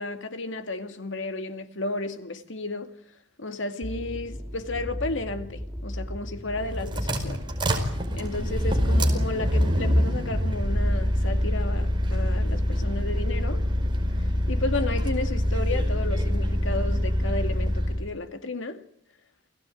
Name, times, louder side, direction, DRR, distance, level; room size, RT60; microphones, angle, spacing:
voice 1, 0.0-2.9 3.4-7.4 8.1-13.7 14.5-18.8, left 2 dB, 75° left, 2.3 m, -33 dB
sound 1, 3.8-11.2, equal, 5° right, 2.2 m, -36 dB
sound 2, 6.5-18.0, equal, 25° right, 5.0 m, -25 dB
29.0 x 18.0 x 9.2 m
head